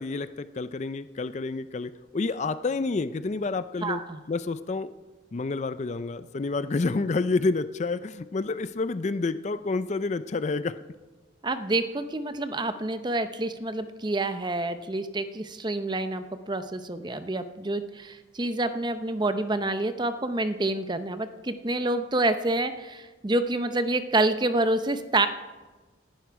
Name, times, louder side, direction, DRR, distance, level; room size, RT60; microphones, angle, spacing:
voice 1, 0.0-4.9 5.3-10.8, left 3 dB, 35° left, 13 dB, 0.4 m, -29 dB
voice 2, 3.8-4.2 11.4-25.3, right 2 dB, 20° right, 10 dB, 0.7 m, -28 dB
19.5 x 11.0 x 4.7 m, 1.3 s
head